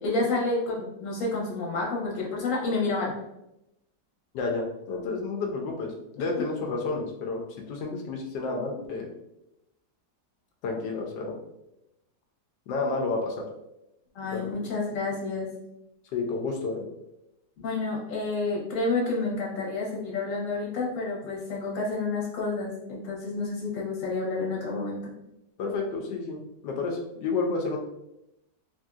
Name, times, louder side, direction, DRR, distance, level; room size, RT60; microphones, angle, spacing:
voice 1, 0.0-3.1 14.1-15.5 17.6-25.1, left 3 dB, 50° left, -3 dB, 1.2 m, -29 dB
voice 2, 4.3-9.1 10.6-11.4 12.7-13.5 14.3-14.6 16.1-16.9 25.6-27.8, left 3 dB, 80° left, 1 dB, 1.2 m, -30 dB
3.2 x 2.7 x 2.3 m, 0.87 s
omnidirectional pair, 1.9 m